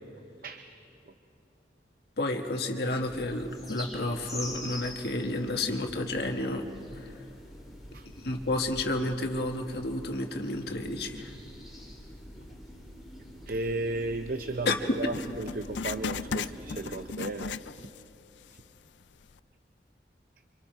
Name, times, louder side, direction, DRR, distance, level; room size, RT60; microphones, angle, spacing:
voice 1, 2.2-6.6 7.0-7.1 8.0-11.3 14.6-14.8, left 2 dB, 60° left, 3 dB, 1.6 m, -31 dB
sound 1, 2.9-17.1, left 1 dB, ahead, 4.1 m, -45 dB
voice 2, 13.5-17.6 18.5-18.6, right 2 dB, 55° right, 8 dB, 0.6 m, -34 dB
Writing, 15.1-18.1 18.4-18.5 19.2-19.3, left 5 dB, 90° left, 0.4 m, -36 dB
28.5 x 25.5 x 4.6 m, 2.9 s
head